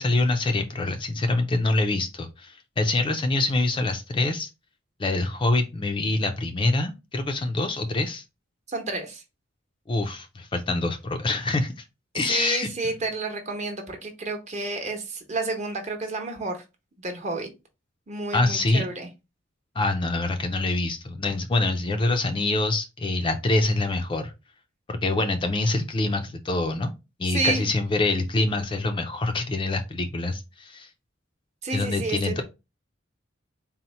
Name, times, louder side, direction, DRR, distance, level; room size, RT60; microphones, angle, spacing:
voice 1, 0.0-4.5 5.0-8.2 9.9-11.8 12.1-12.7 18.3-18.9 19.8-24.3 24.9-26.9 27.2-30.9 31.7-32.4, left 2 dB, 25° left, 6 dB, 0.4 m, -25 dB
voice 2, 8.7-9.2 12.3-16.6 17.0-17.5 18.1-19.1 27.3-27.6 31.6-32.4, right 3 dB, 35° right, 3 dB, 0.9 m, -30 dB
4.1 x 2.0 x 4.1 m, 0.26 s
head